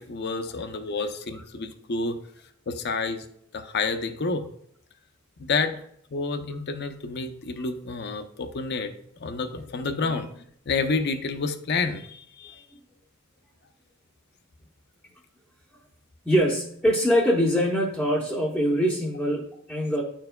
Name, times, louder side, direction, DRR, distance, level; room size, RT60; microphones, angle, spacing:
voice 1, 0.0-2.2 2.7-3.2 3.5-4.4 5.4-5.8 6.1-8.9 9.2-10.3 10.7-12.5, left 4 dB, 50° left, 8 dB, 0.6 m, -29 dB
voice 2, 16.2-20.0, equal, ahead, -4 dB, 0.7 m, -23 dB
10.5 x 4.5 x 2.2 m, 0.69 s
head